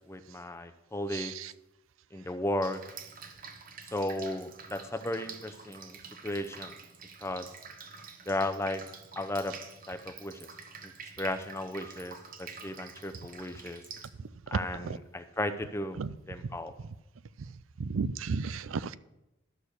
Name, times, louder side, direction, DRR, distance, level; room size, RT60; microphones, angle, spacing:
voice 1, 0.1-1.3 2.1-2.8 3.9-6.7 7.2-7.5 8.3-8.8 9.2-9.5 9.9-10.5 10.8-10.9 11.2-13.8 14.5-16.0 16.3-16.7, left 1 dB, 15° left, 0.6 m, -35 dB
voice 2, 1.1-1.5 14.8-15.0 16.0-16.1 17.8-19.0, right 5 dB, 85° right, 0.5 m, -33 dB
Drip, 2.6-14.1, right 5 dB, 45° right, 1.0 m, -47 dB
12.5 x 6.4 x 6.7 m
head